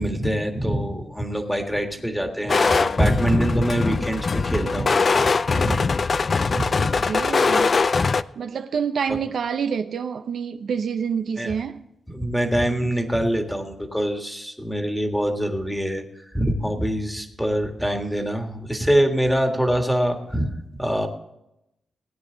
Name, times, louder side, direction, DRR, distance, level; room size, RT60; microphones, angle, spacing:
voice 1, 0.0-5.9 6.3-6.9 9.1-9.2 11.4-11.5 12.1-21.1, equal, ahead, 1.7 m, -24 dB
sound 1, 2.5-8.2, left 4 dB, 35° left, 0.4 m, -21 dB
voice 2, 6.8-7.8 8.4-11.9, right 6 dB, 65° right, 0.6 m, -27 dB
17.0 x 9.4 x 3.9 m
wide cardioid pair, 135°, 0 cm